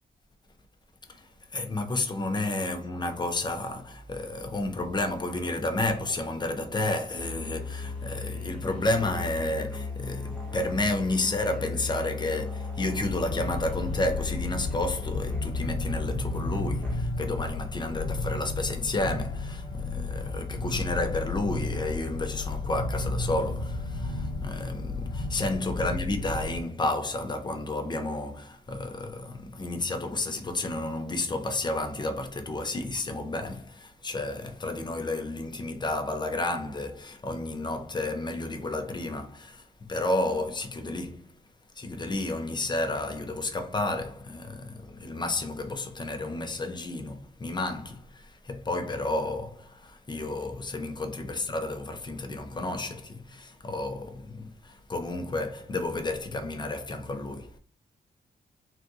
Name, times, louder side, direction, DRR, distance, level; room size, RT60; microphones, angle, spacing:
voice 1, 1.1-41.3 41.8-57.5, left 2 dB, 25° left, 0.6 m, -31 dB
Musical instrument, 7.1-17.3, left 4 dB, 5° left, 1.3 m, -37 dB
sound 1, 12.9-26.6, left 2 dB, 75° left, 1.1 m, -33 dB
3.5 x 2.5 x 2.7 m
cardioid pair, 90°, 17 cm